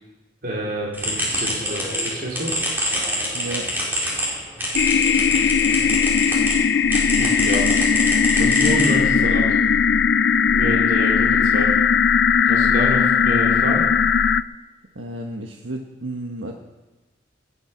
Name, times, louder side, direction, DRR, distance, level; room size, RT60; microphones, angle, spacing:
voice 1, 0.4-2.5 7.2-7.7 8.4-9.6 10.5-11.7 12.5-13.8, right 1 dB, 50° right, -4 dB, 3.8 m, -28 dB
sound 1, 0.9-6.6 6.9-9.3, equal, 10° right, 4.8 m, -26 dB
voice 2, 3.3-3.7 14.9-16.5, right 2 dB, 90° right, 2 dB, 1.4 m, -32 dB
sound 2, 4.7-14.4, left 6 dB, 60° left, 0.4 m, -18 dB
20.0 x 12.0 x 5.9 m, 1.2 s
head